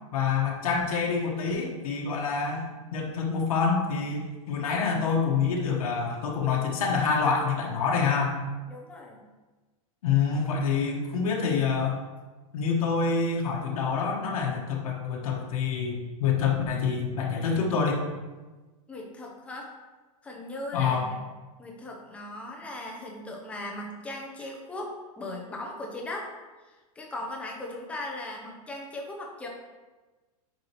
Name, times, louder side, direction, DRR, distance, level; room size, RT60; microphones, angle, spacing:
voice 1, 0.1-2.7 2.9-8.4 10.0-11.9 12.5-18.0 20.7-21.1, left 5 dB, 85° left, -2 dB, 1.6 m, -26 dB
voice 2, 8.7-9.2 18.9-19.7 20.2-21.2 21.6-26.3 26.7-29.5, left 1 dB, 5° left, -1 dB, 0.8 m, -38 dB
8.8 x 4.7 x 3.1 m, 1.3 s
supercardioid pair, 165°, 18 cm